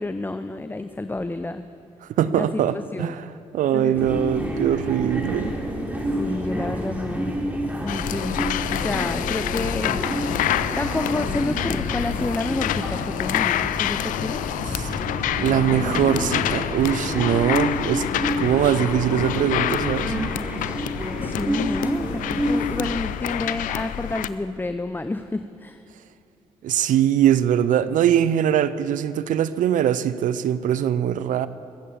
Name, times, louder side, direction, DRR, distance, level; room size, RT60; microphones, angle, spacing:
voice 1, 0.0-1.6 2.3-3.1 3.7-4.3 6.2-7.5 7.8-10.1 10.5-14.4 21.2-25.8, left 2 dB, 15° left, 0.6 m, -30 dB
voice 2, 2.0-5.5 14.8-15.0 15.4-18.1 18.4-20.1 26.6-31.5, right 10 dB, 75° right, 0.6 m, -22 dB
sound 1, 3.9-22.9, equal, 10° right, 3.6 m, -29 dB
Thunder / Rain, 7.6-20.5, left 1 dB, 65° left, 3.5 m, -38 dB
sound 2, 7.9-24.3, left 12 dB, 80° left, 0.5 m, -27 dB
22.0 x 8.3 x 7.2 m
supercardioid pair, 55°, 14 cm